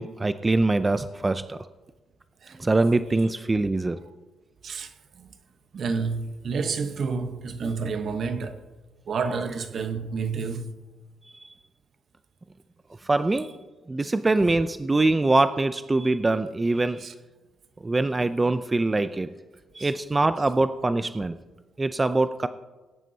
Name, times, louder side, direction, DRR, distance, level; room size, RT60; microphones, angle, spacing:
voice 1, 0.0-1.6 2.6-4.0 13.0-13.5 13.9-17.0 17.8-19.3 19.7-21.3 21.8-22.5, right 2 dB, 20° right, 0.5 m, -23 dB
voice 2, 4.6-5.3 5.7-8.6 9.1-10.7 14.0-14.1 17.0-17.1 19.8-19.9, right 5 dB, 55° right, 1.1 m, -30 dB
19.5 x 10.5 x 2.8 m
cardioid pair, 90°, 0 cm